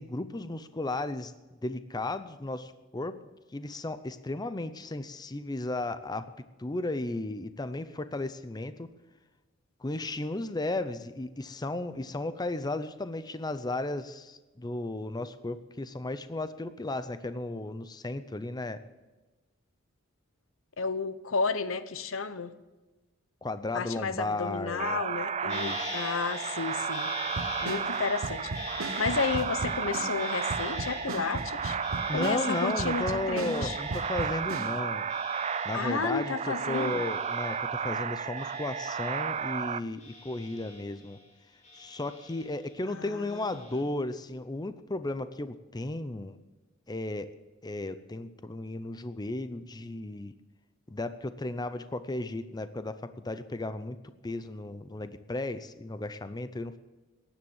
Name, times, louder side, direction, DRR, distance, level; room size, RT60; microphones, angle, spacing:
voice 1, 0.0-1.3 1.6-3.1 3.5-6.3 6.6-8.9 9.8-18.8 23.4-25.0 25.4-26.1 32.1-35.0 35.6-41.2 41.7-46.4 46.9-47.3 47.6-50.3 50.9-53.0 53.2-54.0 54.2-56.8, left 2 dB, 20° left, 11 dB, 0.6 m, -34 dB
voice 2, 20.8-22.5 23.7-27.1 27.6-31.8 32.1-33.8 35.7-37.0 42.9-43.5, left 5 dB, 75° left, 13 dB, 0.9 m, -32 dB
sound 1, 24.8-39.8, right 6 dB, 30° right, 0.4 m, -33 dB
sound 2, 25.5-38.1 38.4-39.6 40.0-41.2 41.6-42.7 43.3-43.8, left 2 dB, 35° left, 5.7 m, -44 dB
sound 3, 27.3-34.8, right 2 dB, 85° right, 1.1 m, -37 dB
16.0 x 10.5 x 7.2 m, 1.2 s
head